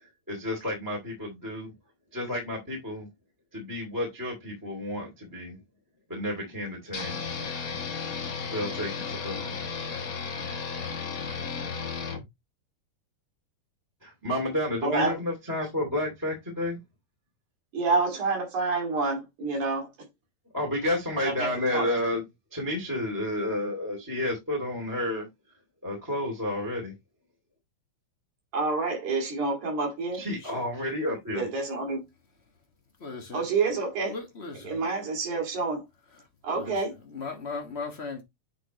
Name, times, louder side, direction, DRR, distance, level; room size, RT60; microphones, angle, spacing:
voice 1, 0.3-1.7 2.1-3.1 3.5-5.6 6.1-7.2 8.5-9.5 14.0-16.8 20.5-22.2 22.5-25.3 25.8-26.9 30.2-31.5, left 1 dB, 5° right, 1.9 m, -31 dB
sound 1, 6.9-12.2, left 5 dB, 55° left, 0.9 m, -34 dB
voice 2, 14.8-15.1 17.7-20.1 21.2-21.9 28.5-30.2 31.4-32.1 33.3-34.2 34.6-35.8 36.4-37.0, right 3 dB, 65° right, 3.8 m, -28 dB
voice 3, 33.0-33.4 34.1-34.8 36.5-36.7 37.1-38.2, left 4 dB, 80° left, 0.5 m, -37 dB
9.1 x 4.1 x 3.0 m
omnidirectional pair, 3.6 m